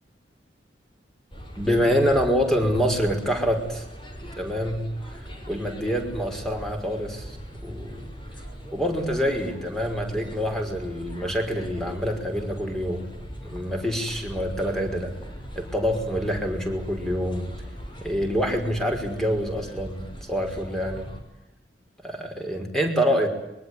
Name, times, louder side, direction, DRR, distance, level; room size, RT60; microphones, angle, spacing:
sound 1, 1.3-21.2, equal, 30° left, 6.5 m, -40 dB
voice 1, 1.6-3.9 4.4-4.9 5.2-7.4 7.6-8.0 8.7-13.1 13.4-15.1 15.6-17.5 18.0-21.1 22.0-23.3, equal, 5° left, 4 dB, 5.4 m, -26 dB
24.5 x 23.5 x 9.7 m, 0.89 s
head